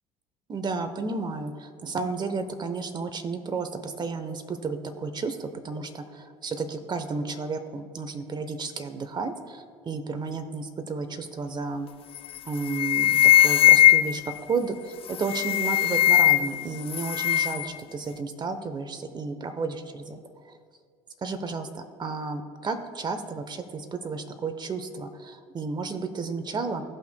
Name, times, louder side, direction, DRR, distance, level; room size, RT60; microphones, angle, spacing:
voice 1, 0.5-11.9 12.5-14.2 14.5-20.2 20.5-20.6 21.2-26.8, right 4 dB, 30° right, 9 dB, 0.9 m, -32 dB
sound 1, 12.1-12.4 12.7-14.3 15.1-16.6 16.9-17.7, left 13 dB, 40° left, 0.4 m, -19 dB
16.5 x 5.8 x 2.3 m, 2.1 s
hypercardioid pair, 75°, 14 cm